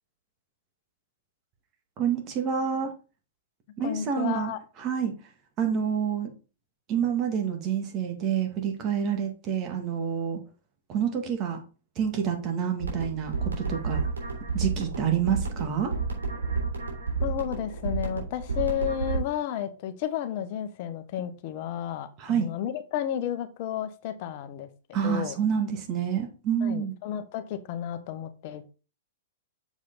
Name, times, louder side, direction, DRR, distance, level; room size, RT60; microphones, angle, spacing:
voice 1, 2.0-2.9 3.8-4.5 4.8-5.1 5.6-6.3 6.9-10.4 10.9-11.6 12.0-14.1 14.5-15.9 22.2-22.5 24.9-26.9, right 8 dB, 35° right, 4 dB, 2.0 m, -28 dB
voice 2, 3.8-4.6 17.2-25.4 26.6-28.7, left 10 dB, 50° left, 10 dB, 1.1 m, -32 dB
sound 1, 12.8-19.2, right 4 dB, 85° right, 3.2 m, -31 dB
7.0 x 4.8 x 4.0 m, 0.34 s
hypercardioid pair, 115°, 0 cm